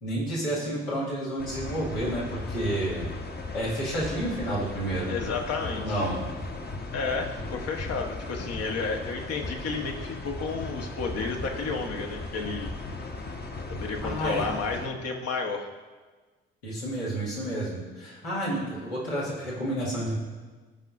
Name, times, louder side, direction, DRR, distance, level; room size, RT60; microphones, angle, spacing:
voice 1, 0.0-3.1 3.5-5.1 5.7-6.2 14.0-14.5 16.6-20.2, right 1 dB, 80° left, -7 dB, 2.3 m, -30 dB
sound 1, 1.4-14.9, left 2 dB, 30° left, 1.1 m, -37 dB
voice 2, 5.1-6.1 6.9-12.7 13.7-15.7, left 4 dB, 50° left, 3 dB, 1.3 m, -32 dB
17.0 x 5.7 x 2.6 m, 1.3 s
figure-of-eight pair, 40°, 31 cm